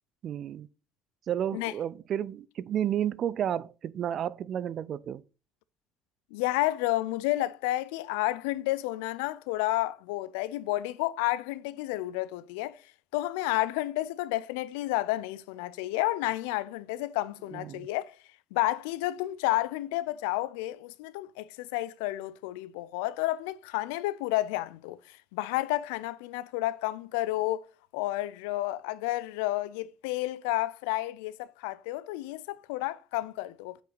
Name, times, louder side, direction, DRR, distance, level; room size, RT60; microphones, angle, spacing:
voice 1, 0.2-0.7 1.3-5.2 17.5-17.9, right 10 dB, 60° right, 0.4 m, -31 dB
voice 2, 6.3-12.8 13.1-18.2 18.5-27.7 27.9-33.8, left 17 dB, 85° left, 0.3 m, -31 dB
7.8 x 5.6 x 3.9 m
hypercardioid pair, 65°, 0 cm